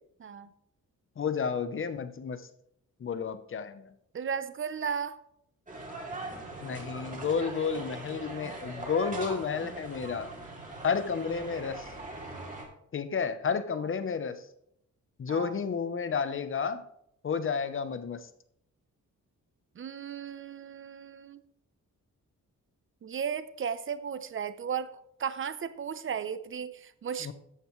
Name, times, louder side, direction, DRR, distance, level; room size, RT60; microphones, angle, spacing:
voice 1, 1.2-2.4 3.0-3.9 6.6-10.3 10.8-11.8 12.9-14.4 15.2-16.8 17.2-18.3 27.2-27.3, left 6 dB, 40° left, 12 dB, 0.8 m, -31 dB
voice 2, 4.1-5.2 15.3-15.5 19.8-21.4 23.0-24.9 25.2-27.3, right 7 dB, 40° right, 14 dB, 0.7 m, -35 dB
sound 1, 5.7-12.6, right 2 dB, 25° right, 2.8 m, -41 dB
13.5 x 9.0 x 3.1 m, 0.75 s
wide cardioid pair, 155°, 31 cm